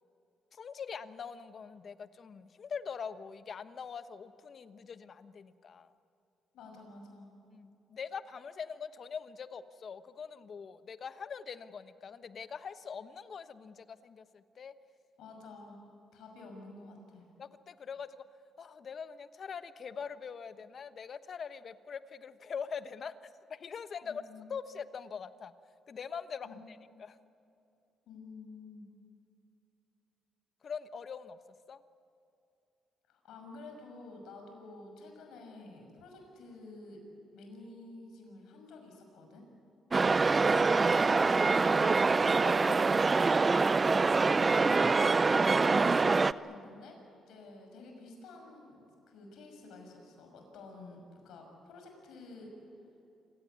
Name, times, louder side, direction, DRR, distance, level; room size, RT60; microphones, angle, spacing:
voice 1, 0.5-5.9 7.5-14.7 17.4-18.2 18.6-24.2 24.5-25.5 25.9-27.2 30.6-31.4 31.7-31.8, left 6 dB, 50° left, 12 dB, 1.1 m, -43 dB
voice 2, 6.5-7.3 15.2-15.8 16.1-17.3 24.0-24.5 26.4-26.6 28.1-28.9 33.1-37.0 37.3-39.5 41.3-42.0 44.4-47.0 47.3-52.5, left 3 dB, 80° left, 3 dB, 6.1 m, -50 dB
sound 1, 39.9-46.3, right 4 dB, 30° right, 0.5 m, -25 dB
27.0 x 17.0 x 9.6 m, 2.7 s
cardioid pair, 90°, 0 cm